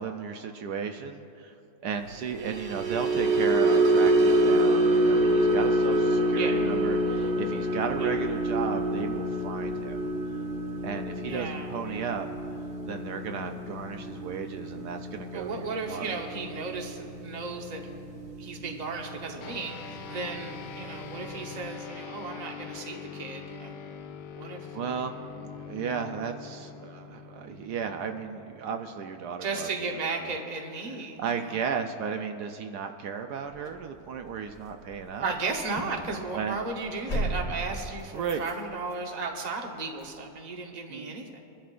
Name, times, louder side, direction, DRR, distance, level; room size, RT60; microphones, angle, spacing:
voice 1, 0.0-1.5 1.8-10.0 10.8-12.3 12.9-16.1 24.4-29.7 30.2-30.4 31.2-35.3 36.3-36.7 38.1-38.4 40.9-41.2, right 6 dB, 75° right, 6 dB, 1.2 m, -35 dB
sound 1, 2.3-18.7 19.0-19.3 19.7-19.9, right 1 dB, 55° right, 1.1 m, -26 dB
voice 2, 11.3-12.1 15.3-23.7 24.4-24.7 29.4-31.7 35.2-41.4, right 4 dB, 30° right, 2 dB, 1.0 m, -35 dB
sound 2, 19.4-29.2, left 7 dB, 85° left, 1.3 m, -43 dB
sound 3, 33.4-40.2, equal, 40° left, 2.0 m, -38 dB
24.5 x 11.5 x 2.5 m, 2.5 s
omnidirectional pair, 1.8 m